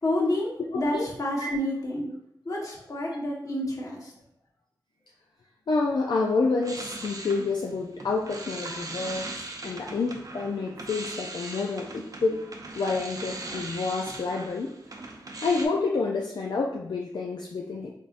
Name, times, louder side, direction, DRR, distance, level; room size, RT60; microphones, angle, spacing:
voice 1, 0.0-2.1 2.4-4.1, left 1 dB, 45° left, -3 dB, 1.1 m, -29 dB
voice 2, 0.7-1.1 1.4-1.5 5.7-12.5 12.8-14.7 15.4-17.9, left 4 dB, 70° left, 0 dB, 0.4 m, -28 dB
sound 1, 6.2-15.7, right 2 dB, 50° right, 0.6 m, -39 dB
4.0 x 3.5 x 2.5 m, 0.73 s
wide cardioid pair, 70°, 8 cm